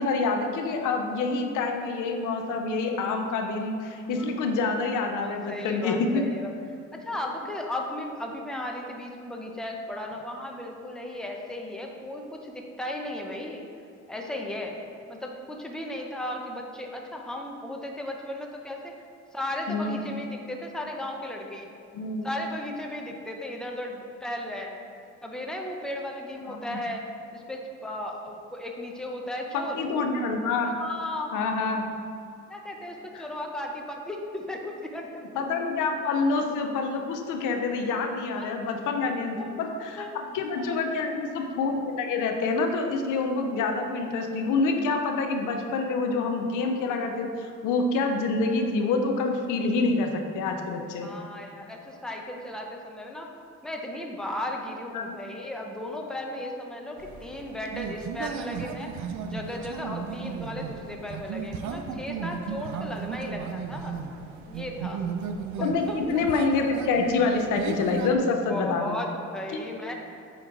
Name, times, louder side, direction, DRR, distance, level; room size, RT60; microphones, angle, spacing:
voice 1, 0.0-6.3 19.7-20.0 21.9-22.3 26.4-26.8 29.5-30.8 31.3-31.9 33.1-33.2 35.3-51.1 54.9-55.2 61.9-62.0 65.6-69.0 69.5-69.7, left 3 dB, 90° left, 4 dB, 0.6 m, -27 dB
voice 2, 5.2-6.5 6.9-13.6 14.1-14.8 15.1-18.9 19.3-21.7 22.2-24.8 25.2-27.0 27.3-29.8 30.8-31.4 32.5-35.2 38.3-38.5 39.4-39.5 40.0-40.2 40.6-40.8 51.0-53.3 53.6-58.9 59.2-64.0 64.5-65.0 65.6-66.0 68.5-69.9, left 1 dB, ahead, 1 dB, 0.7 m, -35 dB
sound 1, 57.0-68.2, right 6 dB, 70° right, 0.5 m, -35 dB
8.5 x 3.1 x 3.8 m, 2.5 s
cardioid pair, 90°, 30 cm